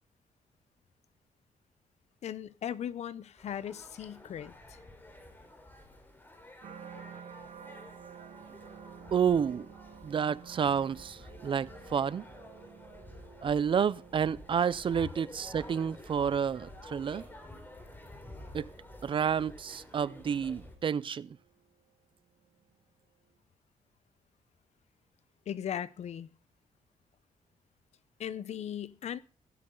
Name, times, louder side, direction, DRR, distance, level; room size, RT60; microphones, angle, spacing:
voice 1, 2.2-4.8 25.5-26.3 28.2-29.2, left 9 dB, 60° left, 0.9 m, -38 dB
sound 1, 3.4-20.8, left 1 dB, 15° left, 3.8 m, -51 dB
sound 2, 6.6-21.8 22.3-22.8, right 8 dB, 65° right, 2.5 m, -53 dB
voice 2, 9.1-9.7 10.0-12.3 13.4-17.3 18.5-18.7 19.0-21.3, right 7 dB, 40° right, 0.6 m, -30 dB
16.5 x 15.5 x 3.9 m
cardioid pair, 135°, 13 cm